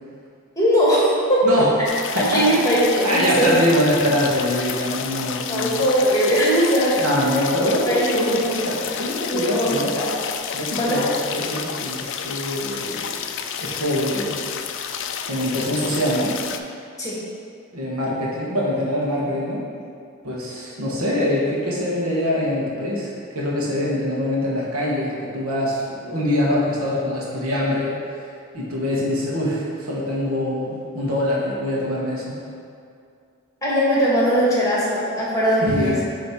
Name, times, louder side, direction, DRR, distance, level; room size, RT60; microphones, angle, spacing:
voice 1, 0.5-1.5 2.1-3.6 5.5-7.0 7.3-7.4 7.9-8.5 9.3-10.1 10.8-11.0 17.0-17.1 33.6-36.1, equal, 15° left, -7 dB, 1.4 m, -20 dB
sound 1, 1.8-16.6, left 7 dB, 60° left, 0.3 m, -30 dB
voice 2, 2.1-2.6 3.0-5.8 7.0-9.9 10.5-13.1 13.6-14.4 15.3-16.4 17.7-19.6 20.2-28.0 28.5-32.3 35.6-36.0, left 1 dB, 85° right, -5 dB, 1.4 m, -24 dB
8.0 x 3.2 x 4.2 m, 2.4 s
head